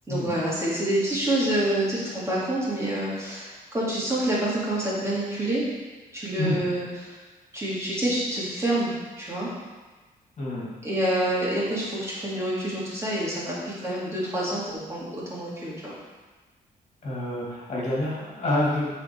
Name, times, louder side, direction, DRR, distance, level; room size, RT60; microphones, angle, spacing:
voice 1, 0.1-5.6 6.1-7.2 7.5-9.5 10.8-15.9, right 1 dB, 15° right, -8 dB, 2.9 m, -27 dB
voice 2, 10.4-10.7 17.0-18.9, left 1 dB, 45° left, -6 dB, 2.8 m, -27 dB
12.0 x 4.4 x 4.8 m, 1.3 s
cardioid pair, 130°, 16 cm